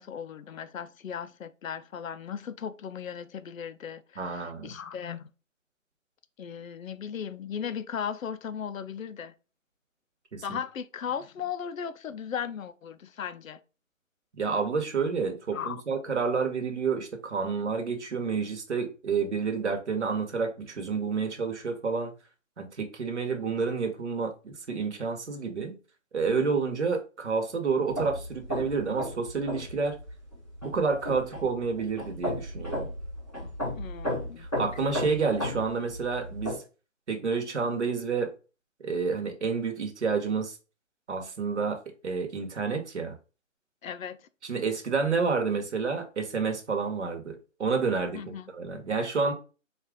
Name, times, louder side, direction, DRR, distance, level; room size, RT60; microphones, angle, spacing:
voice 1, 0.0-5.3 6.4-9.3 10.4-13.6 15.5-15.8 33.7-34.5 43.8-44.2 48.1-48.5, left 7 dB, 85° left, 0.5 m, -37 dB
voice 2, 4.2-4.7 10.3-10.6 14.4-22.1 22.6-25.7 26.1-30.0 30.6-32.9 34.4-36.6 37.1-38.3 38.8-40.6 41.1-43.1 44.4-49.3, right 5 dB, 60° right, 1.1 m, -29 dB
sound 1, 27.9-36.5, left 1 dB, ahead, 0.9 m, -34 dB
4.1 x 2.5 x 3.5 m
hypercardioid pair, 170°, 39 cm